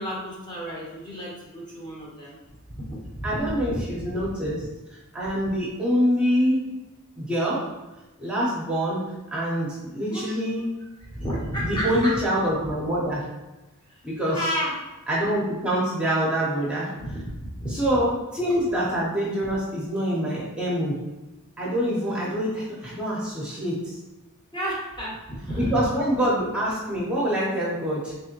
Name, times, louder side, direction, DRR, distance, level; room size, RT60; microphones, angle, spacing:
voice 1, 0.0-2.4 2.7-4.3 10.1-12.2 13.9-14.0 14.3-14.8 17.0-17.8 24.5-25.8, equal, 20° left, -5 dB, 1.0 m, -32 dB
voice 2, 3.2-4.6 5.1-6.7 7.2-7.7 8.2-9.0 9.3-10.7 11.7-13.3 14.0-14.4 15.1-16.9 17.7-21.0 21.6-23.9 25.5-28.1, equal, 5° right, -7 dB, 0.8 m, -25 dB
3.5 x 3.4 x 2.9 m, 1.1 s
head